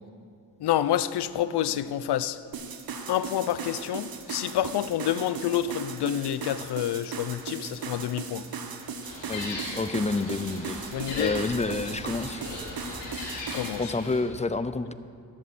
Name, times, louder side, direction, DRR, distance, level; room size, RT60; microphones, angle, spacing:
voice 1, 0.6-2.4 3.1-8.5 10.9-11.3 13.5-13.9, left 11 dB, 65° left, 0.7 m, -28 dB
sound 1, 2.5-13.8, right 5 dB, 55° right, 1.4 m, -38 dB
Gull seagull, 9.0-14.1, left 2 dB, 85° left, 4.0 m, -38 dB
voice 2, 9.3-10.8 11.1-12.4 13.8-14.9, left 3 dB, 15° left, 0.6 m, -29 dB
13.5 x 11.0 x 6.1 m
supercardioid pair, 60°, 42 cm